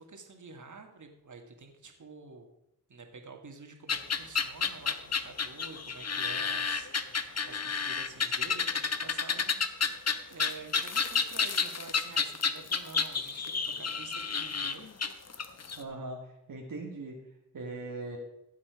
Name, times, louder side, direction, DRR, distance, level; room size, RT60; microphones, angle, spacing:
voice 1, 0.0-2.5 2.9-9.9 10.3-14.9, right 4 dB, 65° right, 4 dB, 2.1 m, -49 dB
sound 1, 3.9-15.8, left 5 dB, 50° left, 1.0 m, -30 dB
voice 2, 15.8-17.2 17.5-18.2, right 2 dB, 80° right, -1 dB, 1.7 m, -40 dB
15.0 x 7.4 x 4.9 m, 0.86 s
cardioid pair, 50°, 33 cm